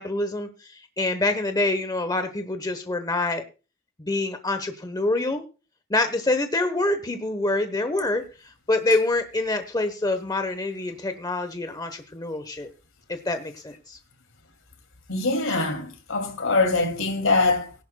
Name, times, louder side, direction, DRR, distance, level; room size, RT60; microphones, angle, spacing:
voice 1, 0.0-3.4 4.0-5.4 5.9-8.2 8.7-12.7 13.1-14.0, left 2 dB, 20° left, 1.0 m, -26 dB
voice 2, 15.1-17.7, left 3 dB, 70° left, 2.5 m, -23 dB
19.5 x 11.0 x 2.3 m
head